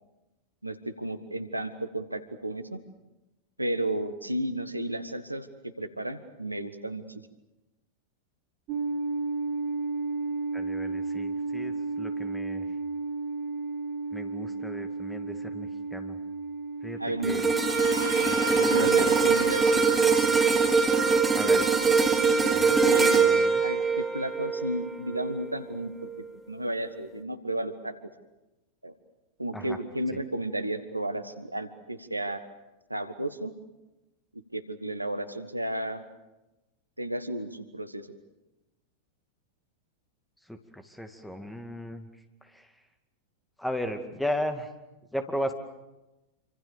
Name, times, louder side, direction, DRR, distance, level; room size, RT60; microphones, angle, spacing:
voice 1, 0.6-2.8 3.6-5.5 5.8-7.2 17.0-17.4 18.2-18.3 18.6-19.9 22.8-23.3 23.6-28.1 28.8-28.9 29.4-32.4 32.9-33.5 34.3-36.0 37.0-38.1, right 1 dB, 85° right, 11 dB, 1.4 m, -33 dB
sound 1, 8.7-22.2, right 3 dB, 40° right, 2.4 m, -34 dB
voice 2, 10.5-12.6 14.1-16.2 16.8-17.5 18.2-19.1 21.3-21.7 22.4-22.8 23.1-23.6 29.5-29.8 30.1-30.2 40.5-42.1 42.4-42.7 43.6-44.7 45.1-45.5, equal, 5° left, 7 dB, 2.3 m, -36 dB
sound 2, 17.0-22.8, right 1 dB, 85° left, 5.7 m, -39 dB
sound 3, 17.2-25.6 26.0-26.2, right 4 dB, 15° right, 3.3 m, -23 dB
27.0 x 25.5 x 7.0 m, 1.0 s
figure-of-eight pair, 90°, 0 cm